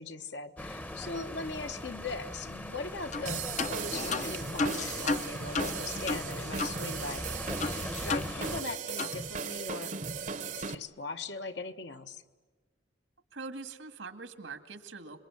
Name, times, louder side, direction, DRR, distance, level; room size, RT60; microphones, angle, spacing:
voice 1, 0.0-7.4 8.0-10.0 10.5-12.2, left 3 dB, 60° left, 8 dB, 1.3 m, -40 dB
sound 1, 0.6-8.6, left 1 dB, 10° left, 0.9 m, -40 dB
sound 2, 3.1-3.3 3.6-6.8 7.1-7.2 7.6-8.7 9.0-9.2, left 3 dB, 40° left, 0.8 m, -33 dB
sound 3, 3.3-10.8, right 5 dB, 40° right, 0.9 m, -38 dB
voice 2, 13.3-15.2, right 4 dB, 85° right, 9 dB, 2.0 m, -43 dB
26.5 x 22.5 x 9.7 m, 1.3 s
head